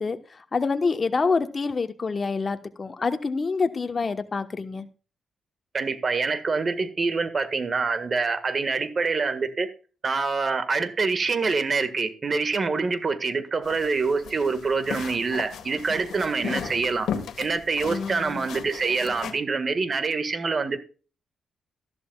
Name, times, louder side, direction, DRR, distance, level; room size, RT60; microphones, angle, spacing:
voice 1, 0.0-4.9 16.4-16.5 17.9-18.4, left 4 dB, 35° left, 1.1 m, -27 dB
voice 2, 5.7-9.7 10.0-17.1 17.4-20.8, right 4 dB, 40° right, 1.7 m, -26 dB
sound 1, 13.6-19.3, left 8 dB, 80° left, 1.5 m, -36 dB
13.5 x 12.0 x 2.3 m
cardioid pair, 90°, 0 cm